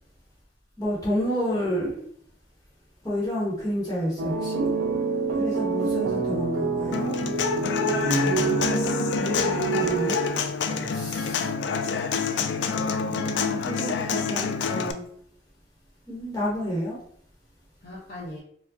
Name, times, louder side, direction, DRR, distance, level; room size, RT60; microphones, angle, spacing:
voice 1, 0.8-2.1 3.0-4.7 5.4-7.2 9.7-10.3 10.9-11.5 12.6-15.1 16.1-17.0, equal, 20° left, -8 dB, 1.0 m, -30 dB
sound 1, 4.2-10.6, right 4 dB, 85° right, 0.5 m, -27 dB
Human voice / Acoustic guitar, 6.9-14.9, left 6 dB, 70° left, 0.3 m, -27 dB
voice 2, 7.8-8.7 9.1-11.2 17.8-18.4, left 1 dB, 50° left, -7 dB, 0.8 m, -37 dB
4.6 x 2.2 x 2.6 m, 0.65 s
head